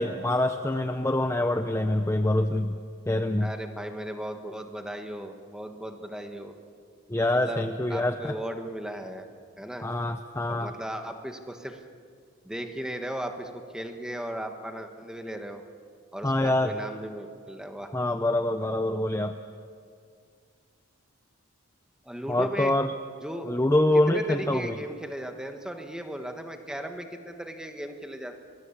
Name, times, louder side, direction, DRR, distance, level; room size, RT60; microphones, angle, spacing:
voice 1, 0.0-2.7 3.1-3.5 7.1-8.3 9.8-10.7 16.2-16.7 17.9-19.3 22.3-22.9 23.4-24.8, left 1 dB, 15° left, 7 dB, 0.6 m, -25 dB
voice 2, 3.4-6.6 7.3-7.6 7.9-9.3 9.6-9.9 10.5-11.8 12.4-15.6 16.1-17.9 22.0-22.7 23.2-23.6 24.1-28.4, right 1 dB, 5° right, 5 dB, 1.4 m, -36 dB
24.0 x 21.0 x 7.3 m, 2.2 s
head